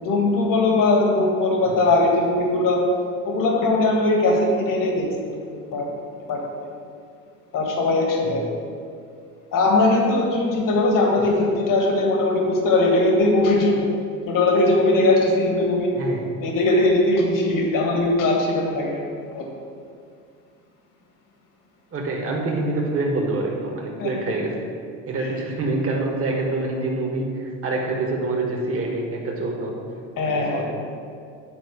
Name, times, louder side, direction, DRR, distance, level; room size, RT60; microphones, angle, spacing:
voice 1, 0.0-2.8 3.2-5.3 5.7-5.9 6.3-6.4 7.5-8.4 9.5-13.9 14.3-15.9 16.4-19.5 24.0-24.1 25.2-25.3 30.2-30.6, left 2 dB, 50° left, 0 dB, 1.7 m, -20 dB
voice 2, 16.0-16.3 21.9-24.7 25.1-29.8 30.3-30.6, right 2 dB, 35° right, -1 dB, 1.5 m, -26 dB
9.1 x 3.8 x 5.1 m, 2.3 s
supercardioid pair, 80°, 41 cm